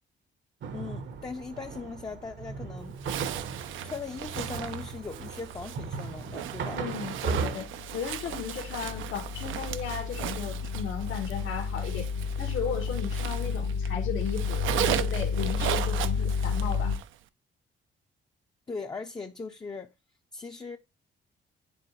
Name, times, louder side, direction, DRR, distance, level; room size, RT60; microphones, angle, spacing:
sound 1, 0.6-7.6, right 5 dB, 70° right, 1.0 m, -36 dB
voice 1, 0.7-3.0 3.8-6.8 18.7-19.9 20.3-20.8, left 4 dB, 20° left, 0.5 m, -39 dB
Zipper (clothing), 3.0-13.9 14.2-17.1, right 12 dB, 85° right, 0.5 m, -37 dB
voice 2, 6.7-12.1 12.4-17.0, left 6 dB, 85° left, 1.6 m, -36 dB
sound 2, 7.6-17.0, left 5 dB, 65° left, 1.0 m, -31 dB
10.0 x 4.0 x 3.0 m
cardioid pair, 125°, 20 cm